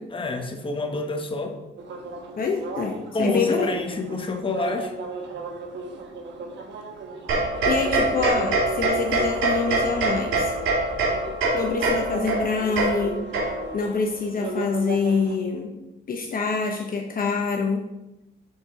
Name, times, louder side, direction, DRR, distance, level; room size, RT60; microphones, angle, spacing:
voice 1, 0.1-1.6 3.1-4.9, left 3 dB, 25° left, 4 dB, 1.1 m, -27 dB
sound 1, 1.8-15.4, right 3 dB, 65° right, 1.3 m, -36 dB
voice 2, 2.4-3.7 7.6-10.5 11.5-13.2 13.7-15.7 16.1-17.8, left 4 dB, 45° left, 1 dB, 0.9 m, -26 dB
sound 2, 7.3-13.9, right 2 dB, 85° right, 2.8 m, -24 dB
6.6 x 4.0 x 6.0 m, 0.95 s
cardioid pair, 90°, 20 cm